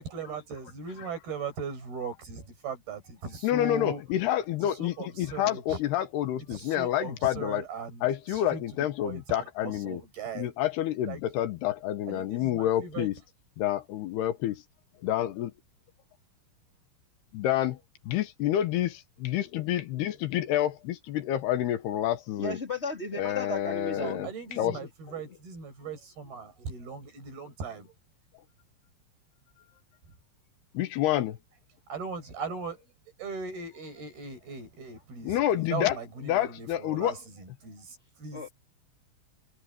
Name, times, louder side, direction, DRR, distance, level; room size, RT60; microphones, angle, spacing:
voice 1, 0.0-4.0 4.6-5.8 6.5-8.6 9.0-10.5 11.0-11.2 12.1-13.1 23.9-27.9 30.0-30.1 31.9-32.8 33.2-38.5, right 5 dB, 50° right, 8.3 m, -39 dB
voice 2, 3.4-7.6 8.0-10.0 10.4-13.1 13.6-14.6 15.0-15.5 17.3-17.8 18.1-22.6 23.2-24.3 24.6-24.8 30.7-31.4 35.2-35.9 36.3-37.1, left 12 dB, 70° left, 2.6 m, -28 dB
voice 3, 22.4-24.3 38.3-38.5, left 2 dB, 15° left, 3.3 m, -34 dB
omnidirectional pair, 6.0 m